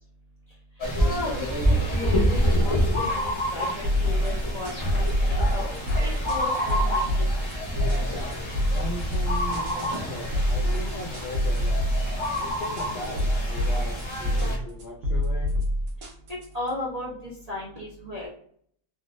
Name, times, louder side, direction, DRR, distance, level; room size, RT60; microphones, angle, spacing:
sound 1, 0.8-14.6, equal, 30° left, 0.5 m, -27 dB
voice 1, 1.0-5.7 6.0-7.2 16.5-18.3, left 1 dB, 60° right, -6 dB, 0.4 m, -35 dB
sound 2, 3.8-16.7, equal, 80° right, 1.4 m, -26 dB
voice 2, 8.7-11.8 12.4-15.5, left 1 dB, 85° left, 0 dB, 0.5 m, -38 dB
3.5 x 2.1 x 2.5 m, 0.62 s
omnidirectional pair, 1.6 m